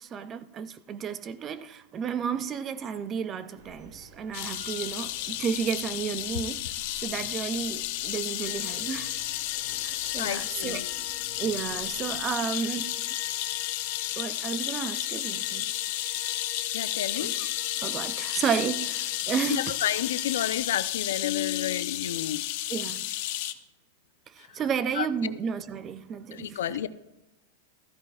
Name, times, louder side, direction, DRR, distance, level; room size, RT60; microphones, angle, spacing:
voice 1, 0.0-6.7 7.0-9.1 9.8-10.9 11.4-12.9 14.2-15.6 17.1-17.5 17.8-19.7 22.7-23.1 24.4-26.8, right 7 dB, 20° right, 0.5 m, -32 dB
sound 1, 3.5-12.3, right 2 dB, 70° right, 3.3 m, -51 dB
sound 2, 4.3-23.5, left 14 dB, 45° left, 0.8 m, -32 dB
sound 3, 8.4-20.5, left 6 dB, 15° left, 3.1 m, -48 dB
voice 2, 10.2-10.9 16.7-17.3 19.5-22.4 24.9-25.3 26.3-26.9, left 11 dB, 85° left, 0.6 m, -31 dB
15.0 x 14.0 x 2.4 m
supercardioid pair, 170°, 0 cm